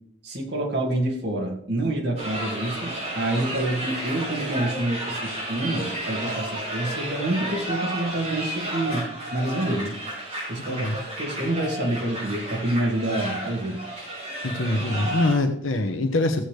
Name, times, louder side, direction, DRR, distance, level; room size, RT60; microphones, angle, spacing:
voice 1, 0.2-10.0 10.5-13.8, right 1 dB, 55° right, 1 dB, 2.1 m, -27 dB
sound 1, 2.2-15.3, right 1 dB, 30° right, 5.2 m, -32 dB
voice 2, 10.7-11.0 14.4-16.4, left 2 dB, 80° left, 4 dB, 1.0 m, -24 dB
15.0 x 8.0 x 3.3 m, 0.68 s
head